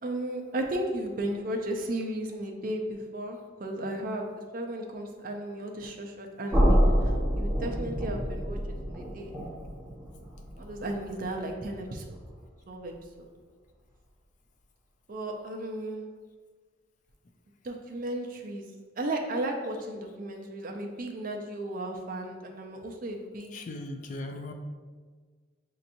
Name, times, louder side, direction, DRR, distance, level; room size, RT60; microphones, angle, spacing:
voice 1, 0.0-4.3 4.5-8.6 8.9-9.3 10.6-12.2 12.7-12.9 13.2-13.3 15.1-16.1 17.6-18.7 19.0-23.5, right 1 dB, 45° right, 2 dB, 0.5 m, -35 dB
sound 1, 6.5-12.4, equal, 5° right, 1.1 m, -28 dB
voice 2, 23.5-24.5, left 2 dB, 40° left, 4 dB, 0.3 m, -38 dB
6.4 x 2.9 x 2.6 m, 1.5 s
head